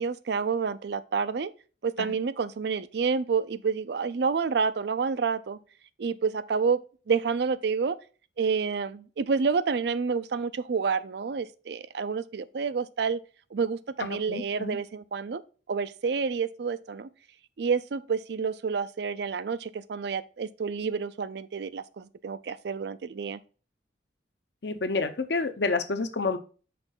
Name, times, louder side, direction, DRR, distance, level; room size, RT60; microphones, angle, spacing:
voice 1, 0.0-1.5 1.8-5.6 6.0-6.8 7.1-8.0 8.4-13.2 13.5-15.4 15.7-17.1 17.6-23.4, right 5 dB, 60° right, 0.4 m, -29 dB
voice 2, 14.0-14.8 24.6-26.4, left 3 dB, 65° left, 0.8 m, -29 dB
5.9 x 4.5 x 3.7 m
head